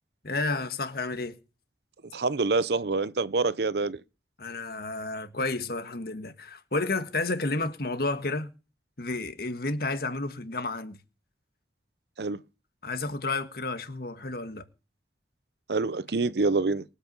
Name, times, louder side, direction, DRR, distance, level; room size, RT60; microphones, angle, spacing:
voice 1, 0.2-1.4 4.4-8.5 9.0-11.0 12.8-14.6, left 3 dB, 60° left, 1.7 m, -31 dB
voice 2, 2.1-4.0 12.2-12.4 15.7-16.8, right 3 dB, 65° right, 0.7 m, -26 dB
22.5 x 8.3 x 5.4 m
head